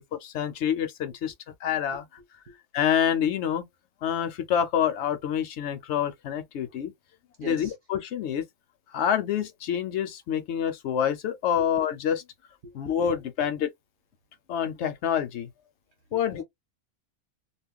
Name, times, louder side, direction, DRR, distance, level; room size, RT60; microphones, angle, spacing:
voice 1, 0.0-1.3 1.6-2.1 2.7-3.6 4.0-6.9 7.4-8.4 8.9-12.2 12.7-13.7 14.5-15.5 16.1-16.4, left 9 dB, 65° left, 0.8 m, -27 dB
voice 2, 7.4-7.7 11.6-11.7 12.6-12.9 16.1-16.4, right 2 dB, 45° right, 0.8 m, -42 dB
2.4 x 2.1 x 3.6 m
omnidirectional pair, 1.4 m